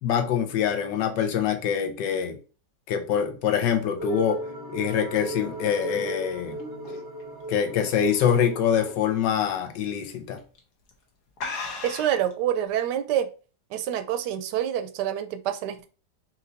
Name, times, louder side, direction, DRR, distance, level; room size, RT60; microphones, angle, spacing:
voice 1, 0.0-2.4 2.9-4.4 4.7-6.6 7.5-10.4, left 8 dB, 85° left, 1.5 m, -25 dB
sound 1, 4.0-9.0, right 1 dB, 30° right, 0.4 m, -36 dB
sound 2, 5.2-8.4 8.8-9.1 9.5-9.6 10.4-10.6 10.9-11.0 11.4-12.3, left 4 dB, 65° left, 1.5 m, -37 dB
sound 3, 6.6-7.6, right 1 dB, 45° left, 1.7 m, -46 dB
voice 2, 11.8-13.3 13.7-15.9, right 10 dB, 75° right, 1.1 m, -27 dB
4.3 x 2.9 x 3.9 m
omnidirectional pair, 1.9 m